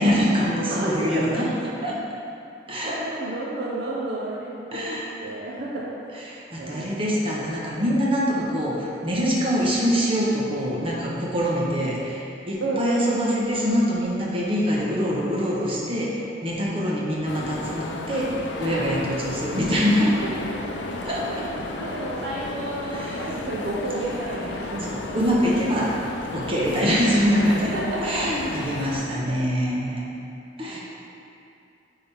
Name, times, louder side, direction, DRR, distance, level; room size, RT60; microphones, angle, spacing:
voice 1, 0.0-1.5 1.8-2.0 2.7-3.0 4.7-5.1 6.3-20.2 21.0-21.5 22.8-23.4 24.9-25.9 26.3-27.6 28.0-30.0 30.6-30.8, equal, 30° right, -5 dB, 1.2 m, -24 dB
voice 2, 0.7-1.4 2.8-6.0 6.6-6.9 7.2-7.5 8.3-8.4 12.6-13.5 21.3-21.5 21.8-24.9 27.7-28.3 29.3-29.5 30.6-30.8, right 2 dB, 65° right, -5 dB, 0.8 m, -31 dB
sound 1, 17.3-29.0, left 2 dB, 80° left, 0.5 m, -33 dB
9.6 x 3.9 x 3.5 m, 2.6 s
head